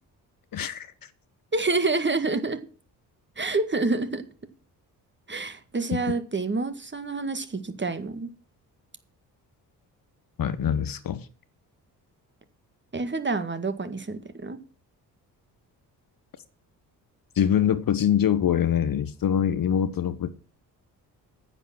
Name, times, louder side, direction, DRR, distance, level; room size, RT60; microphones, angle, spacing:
voice 1, 0.5-0.9 10.4-11.3 17.3-20.3, left 9 dB, 45° left, 1.1 m, -24 dB
voice 2, 1.5-2.6 3.4-4.2 5.3-8.3 12.9-14.6, right 3 dB, 20° right, 1.8 m, -27 dB
9.9 x 9.1 x 6.1 m
figure-of-eight pair, 40°, 49 cm